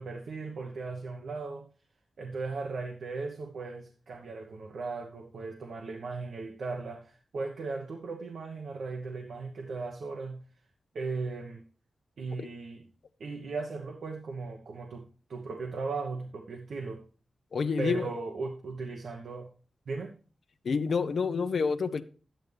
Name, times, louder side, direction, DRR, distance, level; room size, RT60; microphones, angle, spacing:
voice 1, 0.0-1.7 2.2-10.4 10.9-11.6 12.2-12.8 13.2-17.0 17.8-19.5 19.9-20.2, right 4 dB, 75° right, 1.1 m, -37 dB
voice 2, 17.5-18.1 20.6-22.0, left 5 dB, 65° left, 0.7 m, -28 dB
10.5 x 9.1 x 3.3 m
wide cardioid pair, 105°, 0 cm